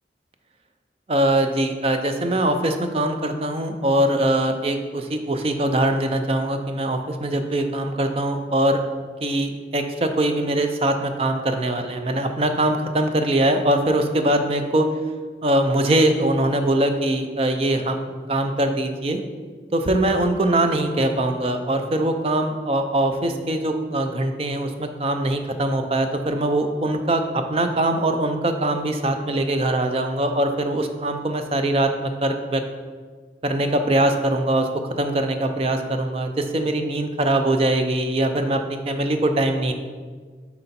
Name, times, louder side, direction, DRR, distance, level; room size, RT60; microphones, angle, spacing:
voice 1, 1.1-8.8 9.2-14.9 15.4-18.0 18.3-19.2 19.7-32.6 33.4-34.7 35.0-39.7, right 1 dB, 35° right, 6 dB, 0.5 m, -22 dB
7.9 x 4.3 x 4.2 m, 1.5 s
head